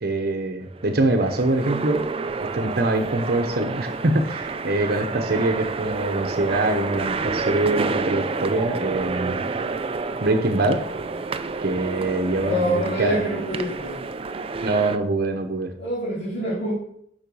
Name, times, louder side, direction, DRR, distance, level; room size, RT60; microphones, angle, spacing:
voice 1, 0.0-2.0 2.5-9.4 10.2-10.8 11.6-13.2 14.6-15.7, right 2 dB, 55° right, 6 dB, 0.9 m, -24 dB
sound 1, 0.6-15.0, right 4 dB, 30° right, 0.4 m, -29 dB
voice 2, 12.4-14.0 15.8-16.7, equal, 65° left, -9 dB, 2.8 m, -26 dB
6.9 x 5.7 x 6.2 m, 0.69 s
head